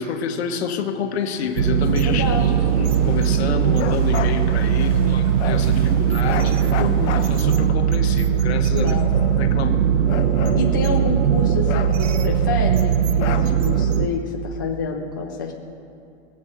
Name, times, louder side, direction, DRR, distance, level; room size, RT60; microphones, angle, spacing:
voice 1, 0.0-2.2 2.8-6.8 7.3-8.9 9.4-9.8, left 7 dB, 60° left, 6 dB, 1.3 m, -28 dB
Walk footsteps / Wind / Waves surf, 1.1-7.7, right 3 dB, 45° right, 2.8 m, -38 dB
sound 1, 1.6-14.1, right 8 dB, 80° right, 0.9 m, -19 dB
voice 2, 2.0-2.5 4.8-5.2 6.8-7.2 8.7-9.1 10.6-15.5, left 3 dB, 20° left, -1 dB, 0.3 m, -28 dB
Bark, 3.7-4.4 5.4-5.7 6.2-7.7 8.5-9.6 10.1-11.2 11.7-12.7 13.2-13.9, left 9 dB, 80° left, 1.1 m, -32 dB
20.0 x 7.5 x 7.5 m, 2.7 s
supercardioid pair, 180°, 36 cm